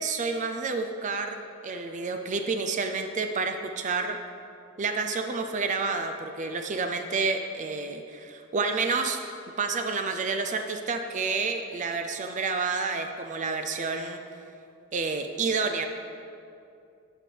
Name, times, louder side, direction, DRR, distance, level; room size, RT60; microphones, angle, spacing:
voice 1, 0.0-4.2 4.8-9.2 9.6-14.2 14.9-15.9, right 4 dB, 35° right, 6 dB, 0.4 m, -29 dB
11.5 x 7.6 x 3.3 m, 2.5 s
head